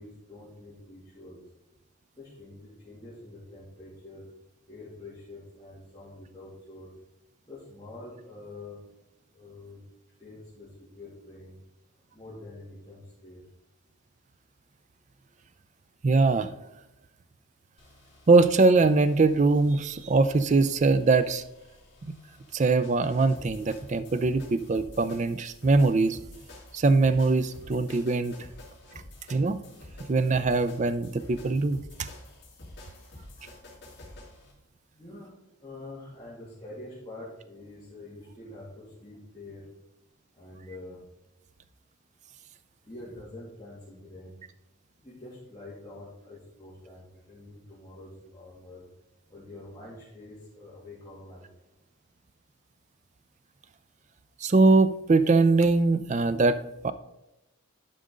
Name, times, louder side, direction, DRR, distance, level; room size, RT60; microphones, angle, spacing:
voice 1, 0.0-1.4 2.2-4.2 4.7-6.9 7.4-8.8 9.3-9.8 10.2-11.6 12.1-13.4 34.9-35.3 35.6-39.6 40.3-41.0 42.8-44.3 45.0-48.9 49.3-51.4, left 2 dB, 15° left, -10 dB, 2.4 m, -46 dB
voice 2, 16.0-16.5 18.3-21.4 22.0-22.1 22.5-26.2 26.7-28.4 29.3-29.6 30.1-32.1 54.4-56.9, right 3 dB, 35° right, 13 dB, 0.4 m, -22 dB
sound 1, 17.8-34.5, left 1 dB, 50° left, 3.1 m, -49 dB
11.5 x 5.1 x 3.8 m, 0.95 s
head